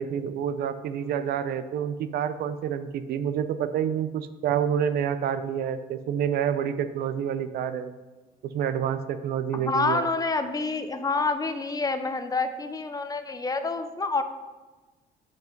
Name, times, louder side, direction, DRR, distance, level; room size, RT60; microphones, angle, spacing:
voice 1, 0.0-7.9 8.5-10.1, right 8 dB, 65° right, 11 dB, 0.6 m, -28 dB
voice 2, 9.5-14.2, left 3 dB, 20° left, 9 dB, 0.7 m, -27 dB
7.9 x 5.4 x 5.2 m, 1.2 s
cardioid pair, 110°, 17 cm